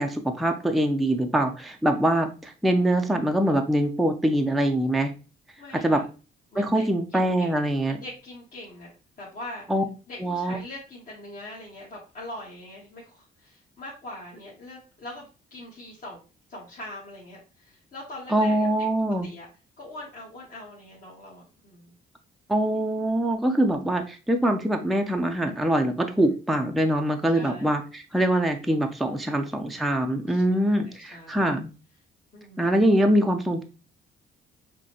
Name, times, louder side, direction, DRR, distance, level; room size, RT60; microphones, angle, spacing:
voice 1, 0.0-5.1 5.8-6.0 6.6-8.0 9.7-9.8 10.2-10.6 18.3-19.3 22.5-31.7 32.6-33.6, right 1 dB, ahead, 4 dB, 0.4 m, -23 dB
voice 2, 5.6-6.1 6.5-6.9 7.1-7.5 7.8-8.9 9.2-9.7 10.1-16.2 16.5-18.7 19.2-19.5 19.8-21.9 26.1-26.3 27.3-27.8 29.1-29.4 30.3-31.5 32.3-32.6, left 1 dB, 45° left, -6 dB, 1.4 m, -42 dB
5.3 x 2.2 x 2.8 m, 0.33 s
cardioid pair, 90°, 20 cm